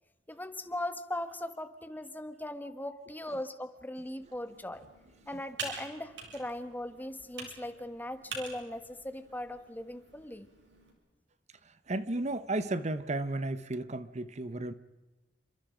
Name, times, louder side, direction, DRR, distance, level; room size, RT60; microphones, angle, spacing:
voice 1, 0.3-4.8 5.3-10.5, left 1 dB, 10° left, 10 dB, 1.4 m, -39 dB
Computer keyboard, 4.2-10.9, right 4 dB, 75° right, 7.2 m, -46 dB
voice 2, 11.6-14.7, right 2 dB, 40° right, 13 dB, 1.0 m, -34 dB
29.5 x 27.0 x 5.1 m, 1.1 s
head